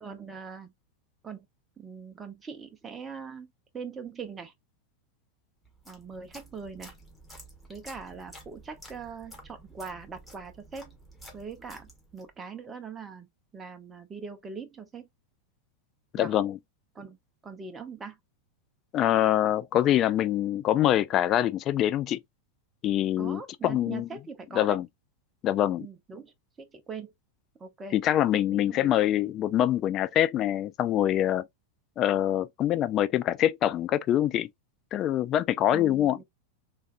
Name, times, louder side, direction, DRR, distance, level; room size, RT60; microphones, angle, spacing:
voice 1, 0.0-0.7 1.2-1.5 1.8-4.5 5.9-7.0 7.7-11.0 11.3-13.3 13.5-15.1 16.2-16.3 16.9-17.2 17.4-18.2 23.2-24.8 25.8-27.1 27.6-28.0 28.5-28.9 35.7-36.2, right 5 dB, 15° right, 0.6 m, -42 dB
sound 1, 5.6-12.4, right 1 dB, 5° left, 1.2 m, -51 dB
voice 2, 16.1-16.6 18.9-22.2 22.8-24.1 24.6-24.9 25.4-25.9 27.9-31.5 32.0-34.5 34.9-36.2, left 12 dB, 30° left, 0.3 m, -25 dB
3.4 x 2.4 x 2.4 m
figure-of-eight pair, 90°, 0 cm